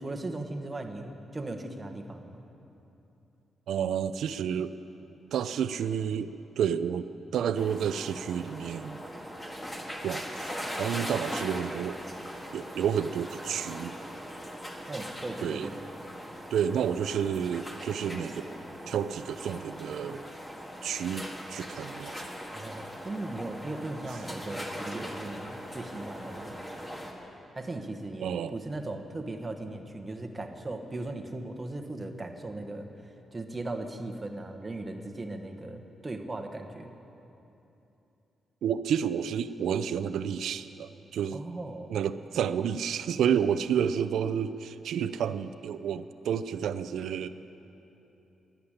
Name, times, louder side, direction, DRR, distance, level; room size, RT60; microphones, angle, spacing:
voice 1, 0.0-2.4 14.9-15.9 22.5-26.5 27.5-32.9 33.3-36.9 41.3-41.9, right 2 dB, 20° right, 4 dB, 1.2 m, -38 dB
voice 2, 3.7-4.7 5.3-9.0 10.0-12.0 12.5-13.9 15.4-15.7 16.5-18.5 18.9-20.2 20.8-22.1 28.2-28.6 38.6-41.4 41.9-47.3, right 8 dB, 85° right, 12 dB, 0.4 m, -30 dB
sound 1, 7.6-27.1, equal, 15° left, 1.7 m, -40 dB
13.5 x 10.5 x 10.0 m, 3.0 s
cardioid pair, 135°, 0 cm